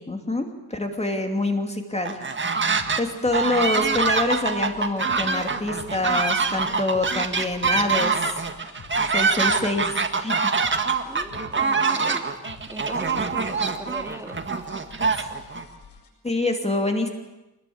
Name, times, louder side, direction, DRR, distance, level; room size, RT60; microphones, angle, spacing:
voice 1, 0.1-2.3 3.0-8.3 9.1-10.5 15.2-15.3 16.2-17.1, left 2 dB, 15° left, 4 dB, 2.7 m, -26 dB
sound 1, 2.0-3.0 3.3-15.6, right 4 dB, 30° right, 1.8 m, -24 dB
sound 2, 2.3-16.1, left 5 dB, 85° left, 7.7 m, -48 dB
voice 2, 11.0-12.2 12.7-14.4, right 1 dB, 5° right, 3 dB, 2.8 m, -39 dB
26.5 x 21.0 x 8.6 m, 0.97 s
wide cardioid pair, 120°, 39 cm